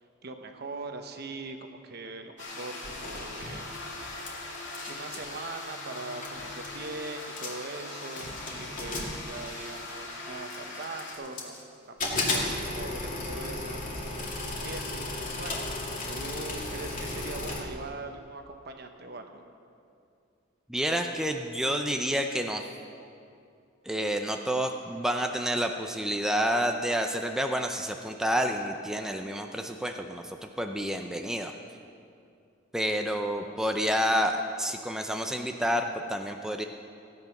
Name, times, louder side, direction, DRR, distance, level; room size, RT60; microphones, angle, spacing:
voice 1, 0.2-3.7 4.9-11.5 11.9-13.8 14.6-15.7 16.0-19.4, right 3 dB, 55° right, 6 dB, 1.1 m, -41 dB
sound 1, 2.4-11.1, left 2 dB, 65° left, 2.6 m, -40 dB
sound 2, 2.8-4.3 4.5-5.3 5.9-6.0 6.2-6.8 7.2-7.7 8.2-9.9 10.5-11.6 12.0-17.6, left 2 dB, 45° left, 2.3 m, -34 dB
voice 2, 20.7-22.6 23.9-31.5 32.7-36.6, equal, 5° right, 4 dB, 0.5 m, -29 dB
16.0 x 9.2 x 5.9 m, 2.5 s
head